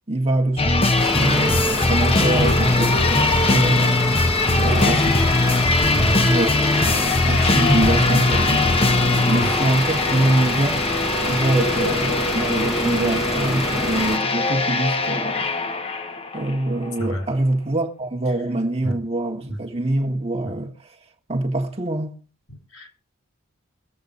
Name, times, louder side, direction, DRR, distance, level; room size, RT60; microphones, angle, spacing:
voice 1, 0.1-4.0 4.6-5.1 6.2-10.9 11.2-15.5 16.3-20.8 21.3-22.2, right 1 dB, 30° right, 1.7 m, -24 dB
sound 1, 0.6-16.5 16.9-17.0, left 3 dB, 25° left, 1.0 m, -20 dB
sound 2, 1.0-14.2, right 1 dB, ahead, 1.2 m, -29 dB
voice 2, 22.5-22.9, right 1 dB, 70° left, 4.8 m, -29 dB
22.5 x 8.0 x 4.0 m
head